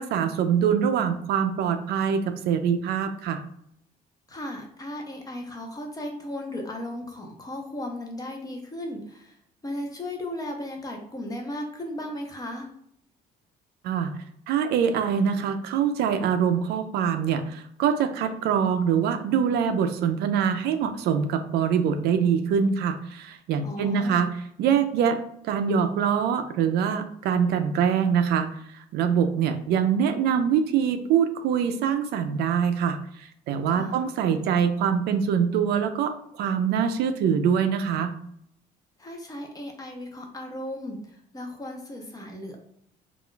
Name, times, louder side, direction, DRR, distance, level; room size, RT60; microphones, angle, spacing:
voice 1, 0.0-3.4 13.8-14.1 14.5-24.3 24.6-25.2 25.4-28.5 28.9-38.1, right 7 dB, 75° right, 8 dB, 0.4 m, -24 dB
voice 2, 4.3-12.7 23.6-24.3 33.7-34.1 39.0-42.6, left 1 dB, 20° left, 2 dB, 0.7 m, -36 dB
2.4 x 2.2 x 3.7 m, 0.69 s
cardioid pair, 110°, 17 cm